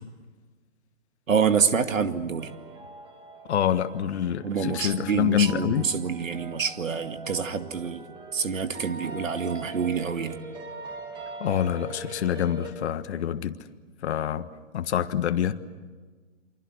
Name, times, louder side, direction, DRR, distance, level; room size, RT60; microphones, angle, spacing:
voice 1, 1.3-2.5 4.4-8.1 8.3-10.4, right 6 dB, 85° right, 9 dB, 2.3 m, -27 dB
sound 1, 2.4-12.7, right 2 dB, 10° right, 2.3 m, -42 dB
voice 2, 3.5-5.8 11.4-13.6 14.0-14.5 14.7-15.5, left 10 dB, 60° left, 10 dB, 1.5 m, -26 dB
28.5 x 25.0 x 8.1 m, 1.4 s
hypercardioid pair, 145°, 38 cm